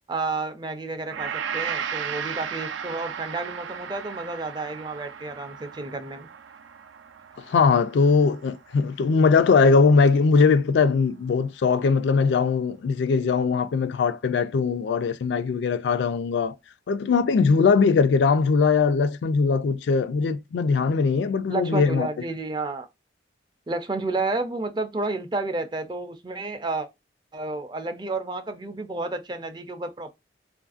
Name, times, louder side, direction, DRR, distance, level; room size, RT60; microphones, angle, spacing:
voice 1, 0.1-6.3 21.5-22.9 23.7-26.9 27.3-30.1, right 3 dB, 25° right, 0.4 m, -31 dB
Gong, 1.1-9.5 9.9-10.0, right 7 dB, 85° right, 0.4 m, -36 dB
voice 2, 7.5-16.6 16.9-22.1, left 5 dB, 70° left, 0.3 m, -20 dB
3.0 x 2.5 x 2.4 m
head